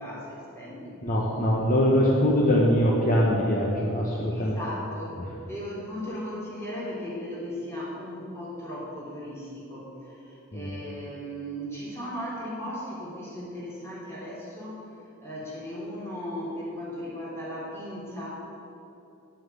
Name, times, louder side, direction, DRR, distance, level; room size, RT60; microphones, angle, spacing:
voice 1, 0.0-1.0 4.3-14.9 15.2-18.4, equal, 10° left, -6 dB, 3.3 m, -37 dB
voice 2, 1.0-4.6 10.5-10.8, equal, 40° left, -3 dB, 1.2 m, -23 dB
9.2 x 7.5 x 9.1 m, 2.8 s
head